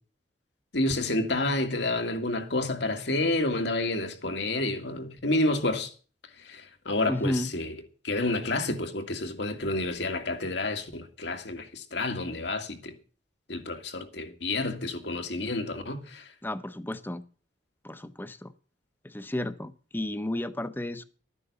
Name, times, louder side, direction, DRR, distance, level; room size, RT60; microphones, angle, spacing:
voice 1, 0.7-5.9 6.4-7.7 8.0-12.9 13.5-16.3, left 2 dB, 70° left, 2.1 m, -29 dB
voice 2, 7.1-7.5 16.4-17.2 17.8-18.5 19.0-21.0, left 1 dB, 10° left, 0.8 m, -32 dB
13.0 x 9.8 x 6.7 m
head